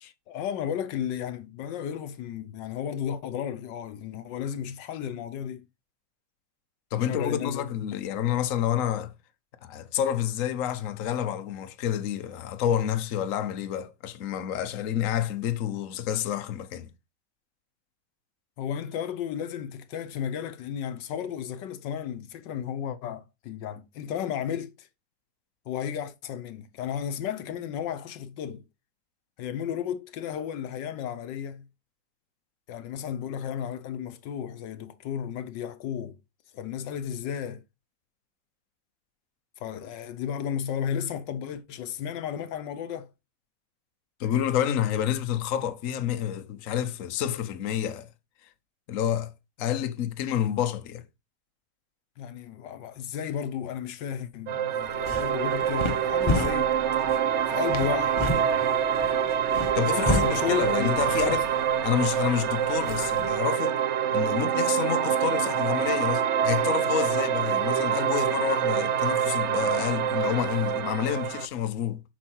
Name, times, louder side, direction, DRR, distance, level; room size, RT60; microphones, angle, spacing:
voice 1, 0.3-5.6 7.0-7.6 18.6-24.9 25.7-28.6 29.4-31.7 32.7-36.2 36.5-37.6 39.6-43.1 52.2-56.7 57.5-58.2 59.9-61.4, left 9 dB, 75° left, 1.4 m, -33 dB
voice 2, 6.9-9.1 9.6-16.9 44.2-48.1 48.9-49.3 49.6-51.0 59.7-61.4 61.8-63.8 64.1-72.0, left 10 dB, 55° left, 1.1 m, -29 dB
sound 1, 54.5-71.5, right 9 dB, 70° right, 0.7 m, -26 dB
sound 2, 54.8-63.3, left 2 dB, 20° left, 0.8 m, -33 dB
7.5 x 5.6 x 4.5 m
omnidirectional pair, 2.0 m